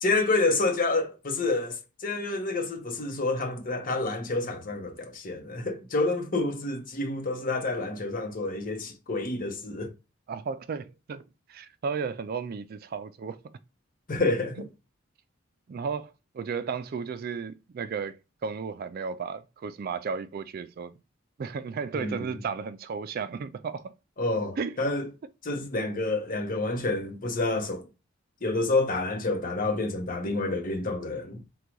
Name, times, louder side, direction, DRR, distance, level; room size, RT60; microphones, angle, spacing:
voice 1, 0.0-9.9 14.1-14.7 21.9-22.4 24.2-25.1 25.4-27.9 28.4-31.4, left 2 dB, 45° left, 0.8 m, -28 dB
voice 2, 10.3-11.2 11.5-13.4 15.7-21.0 21.4-23.9 24.6-24.8, right 5 dB, 50° right, 0.3 m, -34 dB
3.9 x 2.3 x 4.5 m
head